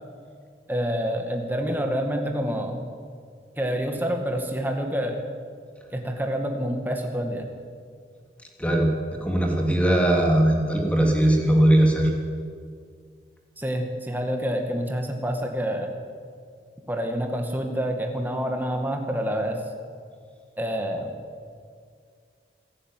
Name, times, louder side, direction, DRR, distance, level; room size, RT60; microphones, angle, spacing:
voice 1, 0.7-2.8 3.6-5.2 5.9-7.5 13.6-15.9 16.9-19.6 20.6-21.1, equal, 10° right, 3 dB, 2.2 m, -27 dB
voice 2, 8.6-8.9 9.2-12.1, right 1 dB, 5° left, 1 dB, 3.1 m, -19 dB
27.5 x 11.0 x 9.4 m, 2.2 s
head